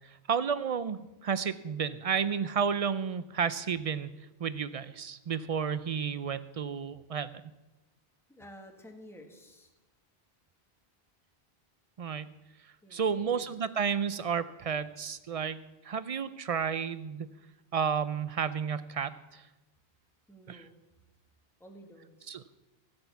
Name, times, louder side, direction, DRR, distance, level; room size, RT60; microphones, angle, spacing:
voice 1, 0.0-4.1 4.4-7.4 12.0-12.3 12.9-15.6 15.8-17.3 17.7-19.5 20.5-20.6 22.3-22.4, right 6 dB, 55° right, 15 dB, 0.4 m, -32 dB
voice 2, 8.3-9.7 12.8-13.5 20.3-20.7 21.6-22.4, equal, ahead, 2 dB, 1.4 m, -52 dB
13.0 x 8.1 x 7.0 m, 1.1 s
omnidirectional pair, 1.1 m